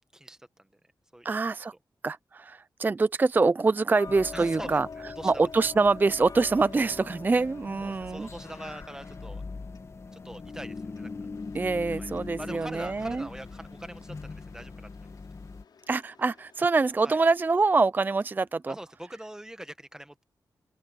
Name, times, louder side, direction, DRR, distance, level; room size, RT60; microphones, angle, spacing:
voice 1, 0.1-0.7 1.1-1.3 4.3-5.3 7.8-9.4 10.1-11.1 11.9-12.1 12.4-15.2 17.0-17.2 18.7-20.2, right 1 dB, 10° right, 1.2 m, -43 dB
voice 2, 1.2-1.7 2.0-4.9 5.2-8.3 11.5-13.3 15.9-18.7, right 3 dB, 25° right, 0.4 m, -25 dB
Tick-tock, 3.9-14.7 15.1-15.2 15.8-15.9 16.4-16.5 17.0-17.1 17.6-17.7 18.2-18.3 18.8-18.9, left 5 dB, 55° left, 2.5 m, -47 dB
sound 1, 4.1-15.6, left 4 dB, 40° left, 1.8 m, -42 dB
sound 2, 11.3-17.5, left 6 dB, 85° left, 6.1 m, -60 dB
open air
wide cardioid pair, 115°, 7 cm